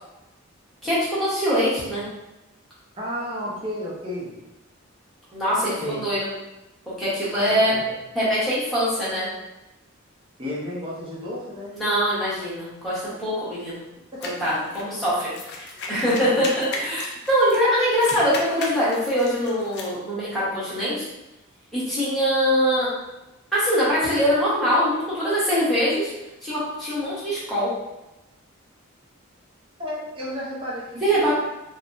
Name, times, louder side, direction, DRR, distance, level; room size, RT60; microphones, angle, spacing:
voice 1, 0.8-2.0 5.3-6.3 7.0-7.7 8.1-9.3 11.7-13.8 14.2-15.3 15.9-21.0 21.7-22.9 23.5-26.1 26.4-27.7 31.0-31.3, equal, ahead, -11 dB, 1.0 m, -23 dB
voice 2, 3.0-4.3 5.8-6.0 7.3-8.0 10.4-11.7 14.1-14.3 16.3-16.8 29.8-31.3, equal, 25° right, -5 dB, 0.5 m, -32 dB
sound 1, 14.2-17.6 17.9-19.9, left 2 dB, 50° left, 0.4 m, -36 dB
3.2 x 2.1 x 2.5 m, 0.95 s
head